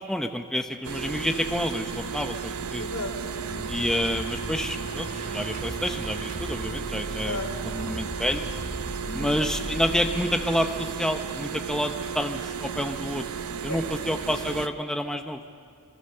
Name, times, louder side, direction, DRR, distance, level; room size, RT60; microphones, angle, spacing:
voice 1, 0.0-2.8 3.7-7.4 7.9-8.4 9.1-13.3 13.6-15.4, equal, 5° left, 5 dB, 0.7 m, -29 dB
sound 1, 0.8-14.7, right 6 dB, 80° right, 0.8 m, -34 dB
voice 2, 2.8-3.7 7.2-7.9 9.0-9.3 13.7-13.8, left 1 dB, 75° left, 2 dB, 4.1 m, -35 dB
sound 2, 3.5-13.4, equal, 40° right, 3.3 m, -39 dB
27.5 x 23.5 x 6.7 m, 2.4 s
head